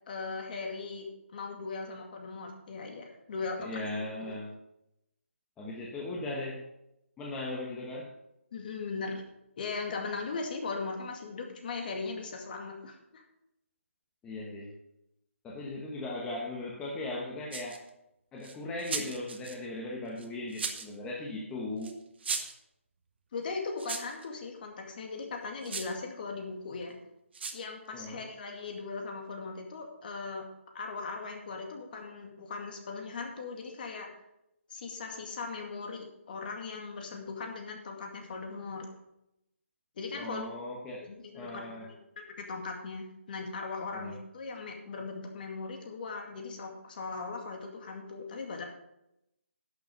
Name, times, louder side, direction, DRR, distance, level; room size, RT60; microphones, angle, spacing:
voice 1, 0.1-1.1 1.3-3.7 4.2-4.3 8.5-9.2 9.6-13.2 23.3-26.9 27.5-30.4 30.7-34.1 34.7-38.8 40.0-40.5 41.0-48.6, left 4 dB, 40° left, 2 dB, 2.2 m, -39 dB
voice 2, 3.6-4.6 5.6-6.7 7.2-8.1 14.2-14.7 15.4-17.8 18.3-22.0 27.9-28.2 40.2-41.9 43.9-44.2, left 2 dB, 10° left, -3 dB, 1.1 m, -38 dB
sound 1, 17.5-17.9 18.4-19.5 20.2-20.9 21.8-21.9 22.2-22.6 23.8-24.3 25.6-25.9 27.3-27.6, right 5 dB, 50° right, 1.4 m, -36 dB
11.0 x 6.9 x 5.2 m, 0.84 s
figure-of-eight pair, 155°, 7 cm